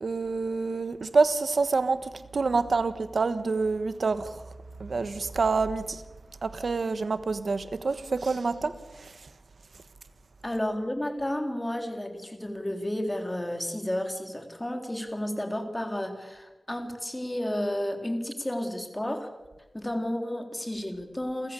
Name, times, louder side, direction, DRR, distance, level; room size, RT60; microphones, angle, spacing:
voice 1, 0.0-4.4 4.8-6.0 6.4-9.1, right 4 dB, 80° right, 1.3 m, -27 dB
voice 2, 10.4-19.3 19.7-21.5, left 1 dB, 20° left, 3.7 m, -32 dB
30.0 x 15.0 x 6.9 m
wide cardioid pair, 70°, 0 cm